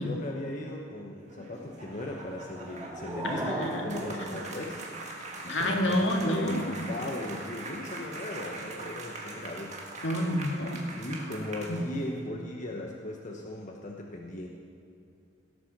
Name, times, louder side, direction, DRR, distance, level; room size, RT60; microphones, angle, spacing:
voice 1, 0.0-4.8 5.4-9.8 10.9-14.5, left 1 dB, 40° left, 0 dB, 1.1 m, -37 dB
sound 1, 1.2-12.2, right 2 dB, 40° right, 1.7 m, -42 dB
sound 2, 2.4-5.4, right 1 dB, 20° right, 2.2 m, -38 dB
voice 2, 3.2-3.9 4.2-4.3 5.5-6.8 10.0-10.8 11.7-11.8, left 1 dB, 70° left, 1 dB, 2.0 m, -29 dB
17.0 x 8.9 x 6.7 m, 2.4 s
head